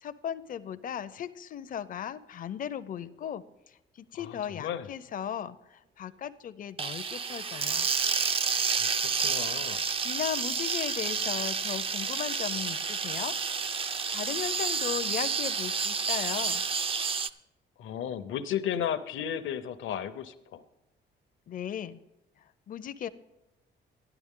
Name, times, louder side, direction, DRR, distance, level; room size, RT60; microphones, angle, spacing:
voice 1, 0.0-3.4 3.9-7.9 10.0-13.4 14.1-16.6 21.5-22.0 22.7-23.1, left 9 dB, 45° left, 12 dB, 0.5 m, -36 dB
voice 2, 4.1-4.9 8.8-9.8 17.8-20.6, left 9 dB, 80° left, 12 dB, 0.7 m, -34 dB
sound 1, 6.8-17.3, right 5 dB, 30° right, 0.4 m, -30 dB
12.0 x 11.0 x 3.7 m, 0.94 s
cardioid pair, 90°, 20 cm